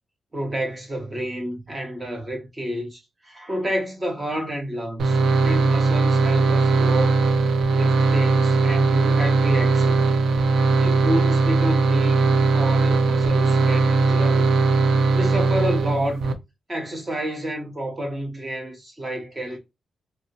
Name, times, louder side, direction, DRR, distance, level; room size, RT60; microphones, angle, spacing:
voice 1, 0.3-7.2 7.7-10.0 10.8-14.5 15.1-16.2 16.7-19.6, equal, 20° right, 0.6 m, -29 dB
sound 1, 5.0-16.3, right 3 dB, 85° right, 0.4 m, -19 dB
2.8 x 2.6 x 2.8 m
wide cardioid pair, 165°, 0 cm